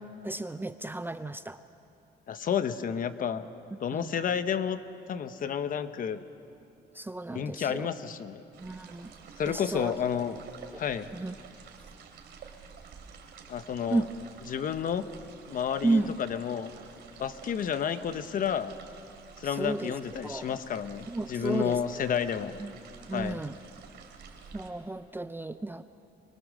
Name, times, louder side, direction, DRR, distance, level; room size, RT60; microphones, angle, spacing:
voice 1, 0.2-1.6 4.0-4.1 7.0-7.9 8.6-9.1 9.5-9.9 11.1-11.3 13.9-14.1 15.8-16.1 19.6-19.9 20.2-20.5 21.1-21.8 22.6-22.7 23.1-23.6 24.5-25.8, right 2 dB, 10° right, 11 dB, 0.5 m, -32 dB
voice 2, 2.3-3.5 3.8-4.8 5.1-6.2 7.3-8.4 9.4-10.4 10.8-11.1 13.5-14.0 14.5-15.1 15.5-16.7 17.2-18.8 19.4-22.6 23.1-23.4, left 8 dB, 50° left, 11 dB, 1.0 m, -31 dB
sound 1, 8.5-24.7, right 6 dB, 70° right, 2.9 m, -50 dB
25.0 x 23.0 x 6.6 m, 2.8 s
cardioid pair, 130°, 18 cm